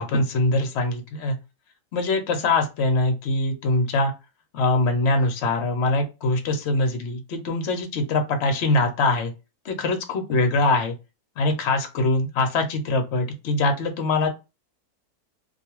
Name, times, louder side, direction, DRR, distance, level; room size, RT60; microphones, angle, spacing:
voice 1, 0.0-1.4 1.9-4.1 4.5-9.3 9.6-11.0 11.4-14.3, left 2 dB, 60° left, 5 dB, 0.7 m, -23 dB
2.4 x 2.3 x 3.0 m, 0.27 s
omnidirectional pair, 1.6 m